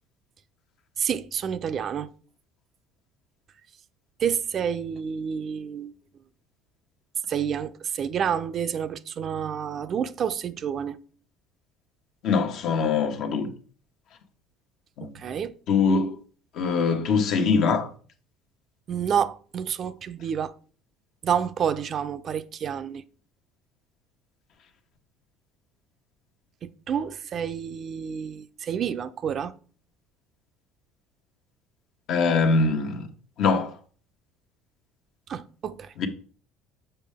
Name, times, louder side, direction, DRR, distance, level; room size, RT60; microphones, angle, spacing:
voice 1, 1.0-2.1 4.2-5.9 7.3-11.0 15.1-15.5 18.9-20.5 21.2-23.0 26.6-29.6 35.3-35.9, right 8 dB, 45° right, 0.5 m, -29 dB
voice 2, 12.2-13.5 15.0-15.1 15.7-16.1 16.5-17.9 32.1-33.1 33.4-33.8 36.0-36.1, left 4 dB, 60° left, 1.1 m, -23 dB
6.8 x 5.5 x 3.5 m
supercardioid pair, 85°, 0 cm